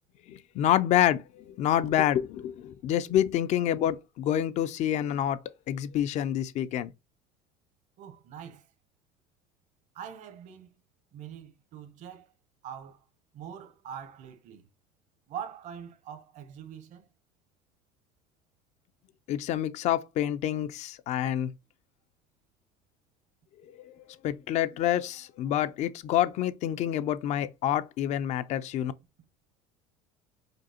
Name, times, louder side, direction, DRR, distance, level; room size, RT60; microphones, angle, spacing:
voice 1, 0.3-1.2 1.5-5.4 5.7-6.9 19.3-21.5 23.9-28.9, left 11 dB, 55° left, 0.4 m, -27 dB
voice 2, 8.0-8.7 9.9-10.7 11.1-12.3 12.6-13.0 13.3-14.6 15.3-17.1, right 8 dB, 60° right, 0.7 m, -43 dB
5.0 x 2.0 x 2.8 m
supercardioid pair, 105°, 14 cm